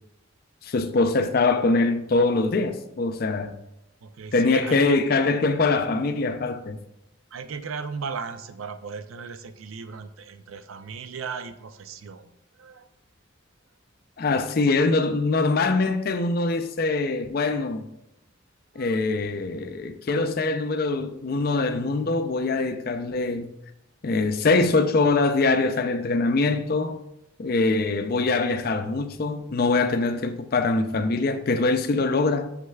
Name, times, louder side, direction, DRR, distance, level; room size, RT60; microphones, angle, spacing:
voice 1, 0.6-3.6 4.3-6.8 14.2-17.9 18.8-23.5 24.0-27.0 27.4-32.5, left 3 dB, 45° left, 0.4 m, -23 dB
voice 2, 4.0-5.0 7.3-12.9 14.7-14.9 18.7-18.9, right 5 dB, 85° right, 0.5 m, -37 dB
6.5 x 6.3 x 2.3 m
head